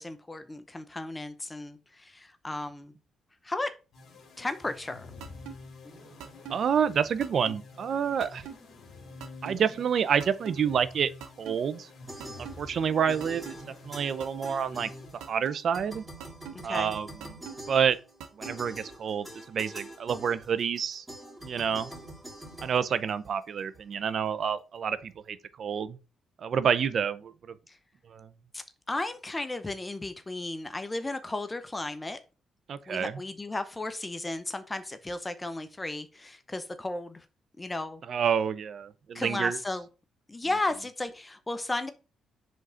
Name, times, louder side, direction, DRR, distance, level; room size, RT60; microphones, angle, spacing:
voice 1, 0.0-2.9 3.4-3.7 4.4-5.1 16.5-16.9 27.7-27.8 28.5-32.2 32.9-37.2 37.6-38.0 39.1-39.8 40.3-41.9, left 2 dB, 20° left, 0.7 m, -34 dB
sound 1, 3.9-15.7, left 3 dB, 60° left, 2.0 m, -49 dB
sound 2, 5.2-5.5 6.2-6.6 7.2-7.5 8.2-8.6 9.2-9.6 10.2-10.6 11.2-11.5 12.2-12.6 13.2-13.5 14.2-14.6 15.2-15.6 16.2-16.6 17.2-17.5 18.2-18.6, right 9 dB, 85° right, 0.8 m, -41 dB
voice 2, 6.5-8.5 9.4-11.1 11.4-11.9 12.4-13.4 13.8-14.9 15.3-16.0 16.6-17.1 17.7-18.0 18.4-21.0 21.4-21.9 22.6-26.0 26.4-27.5 28.1-28.3 32.7-33.1 38.1-39.6, right 7 dB, 60° right, 0.6 m, -28 dB
sound 3, 12.1-12.8 13.1-15.4 15.7-23.6, right 1 dB, 15° right, 2.5 m, -45 dB
5.1 x 3.8 x 5.6 m
supercardioid pair, 70°, 0 cm